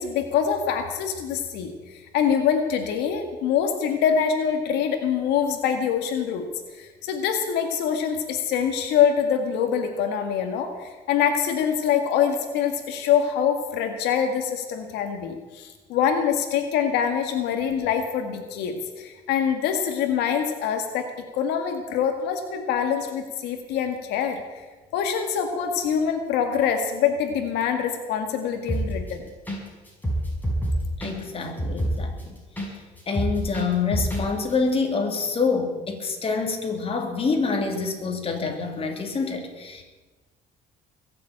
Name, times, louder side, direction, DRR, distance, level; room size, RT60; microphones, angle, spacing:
voice 1, 0.0-6.5 6.7-21.1 21.3-24.6 24.9-29.3, left 8 dB, 90° left, 5 dB, 1.9 m, -25 dB
sound 1, 28.7-29.1 29.5-29.6 29.9-32.7 33.0-34.2 34.5-34.6, right 1 dB, 10° left, 5.9 m, -26 dB
voice 2, 31.0-32.4 33.1-39.8, left 4 dB, 35° left, 3 dB, 3.2 m, -26 dB
21.5 x 7.6 x 8.8 m, 1.3 s
cardioid pair, 110°, 17 cm